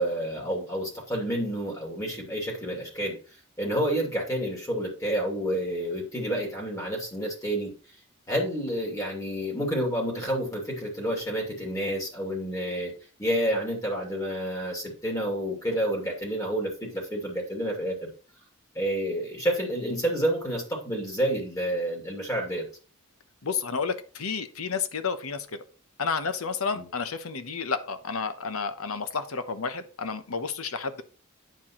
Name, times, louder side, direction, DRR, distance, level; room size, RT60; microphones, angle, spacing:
voice 1, 0.0-3.2 3.6-7.7 8.3-12.9 13.2-18.1 18.7-22.6 26.7-26.9, equal, 15° left, -1 dB, 2.5 m, -29 dB
voice 2, 23.4-25.5 26.0-31.0, left 5 dB, 90° left, 11 dB, 0.9 m, -31 dB
9.3 x 7.3 x 3.0 m, 0.37 s
head